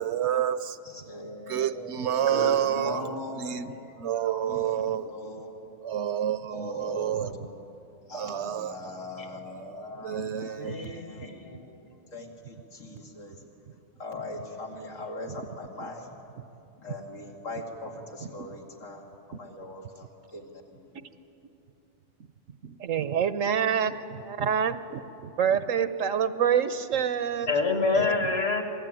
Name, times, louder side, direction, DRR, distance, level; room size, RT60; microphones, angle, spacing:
voice 1, 0.0-0.8 1.5-3.7 4.0-5.1 5.8-7.3 8.1-8.8 9.7-10.9 18.4-18.5 22.6-22.8 24.4-24.5 25.2-25.3, right 10 dB, 65° right, 0.9 m, -29 dB
voice 2, 0.8-3.9 4.2-4.8 5.1-5.8 6.5-7.3 8.1-11.6 12.1-13.4 14.0-16.1 16.8-19.0 19.4-20.9, left 1 dB, 85° left, 3.1 m, -41 dB
voice 3, 2.3-3.4 4.1-4.4 9.2-9.3 10.5-11.8 27.5-28.6, left 3 dB, 55° left, 2.4 m, -29 dB
voice 4, 22.8-23.9 24.2-24.8 25.4-27.5, right 8 dB, 85° right, 1.3 m, -26 dB
26.0 x 19.5 x 9.1 m
omnidirectional pair, 1.3 m